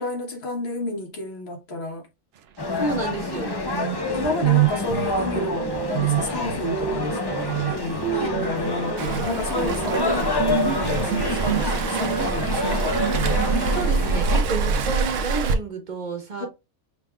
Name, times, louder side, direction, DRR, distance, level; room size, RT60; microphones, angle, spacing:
voice 1, 0.0-2.1 3.4-3.5 4.1-13.0 16.4-16.5, left 2 dB, 60° left, 1.3 m, -31 dB
sound 1, 2.6-14.4, left 2 dB, 30° left, 0.5 m, -28 dB
voice 2, 2.8-3.7 8.1-8.3 13.4-16.5, right 3 dB, 40° right, 1.2 m, -30 dB
sound 2, 3.3-3.4 3.7-14.9, right 12 dB, 65° right, 0.8 m, -28 dB
Waves surf, 9.0-15.5, right 4 dB, 90° right, 1.0 m, -26 dB
5.7 x 3.4 x 2.2 m
omnidirectional pair, 1.3 m